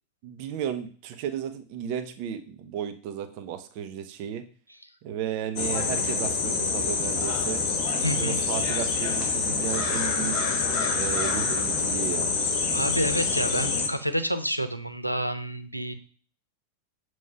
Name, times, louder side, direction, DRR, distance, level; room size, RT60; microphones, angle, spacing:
voice 1, 0.2-4.4 5.0-7.6 8.1-10.5 10.9-12.3, right 9 dB, 45° right, 8 dB, 0.8 m, -34 dB
sound 1, 5.6-13.9, left 4 dB, 40° left, 1.3 m, -26 dB
voice 2, 8.0-8.4 12.7-15.9, equal, 90° left, 9 dB, 0.6 m, -29 dB
7.2 x 3.1 x 5.6 m, 0.41 s
figure-of-eight pair, 90°, 0 cm